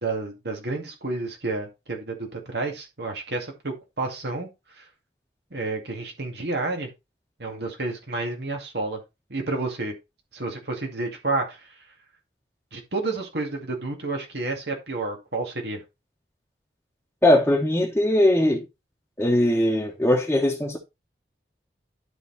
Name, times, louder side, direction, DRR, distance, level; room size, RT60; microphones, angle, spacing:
voice 1, 0.0-4.5 4.8-4.9 5.5-6.9 7.4-9.0 9.3-9.9 10.3-11.8 12.7-15.8, right 3 dB, 75° right, 2.2 m, -30 dB
voice 2, 17.2-18.6 19.2-20.8, left 1 dB, 10° left, 1.3 m, -20 dB
12.0 x 4.0 x 4.1 m
head